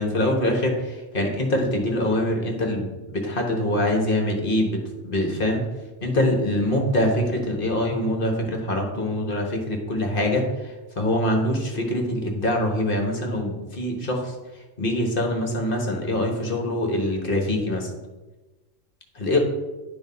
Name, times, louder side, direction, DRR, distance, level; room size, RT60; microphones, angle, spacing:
voice 1, 0.0-5.6 6.0-14.3 14.8-17.9 19.1-19.4, left 1 dB, 45° left, 1 dB, 1.4 m, -24 dB
10.5 x 3.6 x 5.4 m, 1.2 s
omnidirectional pair, 1.4 m